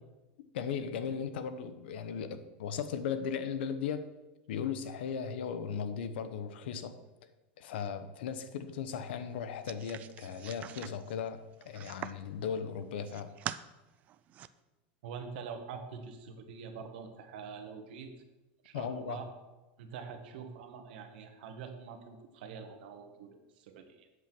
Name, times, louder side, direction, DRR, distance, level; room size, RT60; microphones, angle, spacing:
voice 1, 0.5-4.1 4.5-7.0 7.6-13.3 18.7-19.3, left 7 dB, 85° left, 10 dB, 0.9 m, -37 dB
sound 1, 9.7-12.3 12.8-13.6 14.1-14.5, right 11 dB, 25° right, 0.3 m, -43 dB
voice 2, 15.0-18.1 18.6-19.3 19.8-23.3 23.6-24.1, right 6 dB, 65° right, 6 dB, 1.5 m, -45 dB
8.0 x 7.3 x 6.1 m, 1.1 s
supercardioid pair, 170°, 6 cm